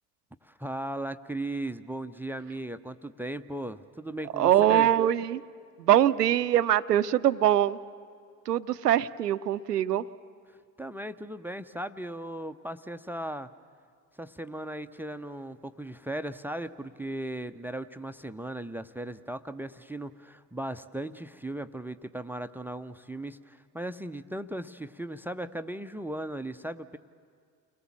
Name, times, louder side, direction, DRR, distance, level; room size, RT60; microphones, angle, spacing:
voice 1, 0.4-4.9 10.5-13.5 14.2-27.0, right 1 dB, 5° right, 12 dB, 0.6 m, -37 dB
voice 2, 4.4-5.4 5.8-7.8 8.5-10.0, right 11 dB, 80° right, 14 dB, 0.6 m, -23 dB
29.5 x 20.5 x 7.4 m, 2.2 s
figure-of-eight pair, 55°, 47 cm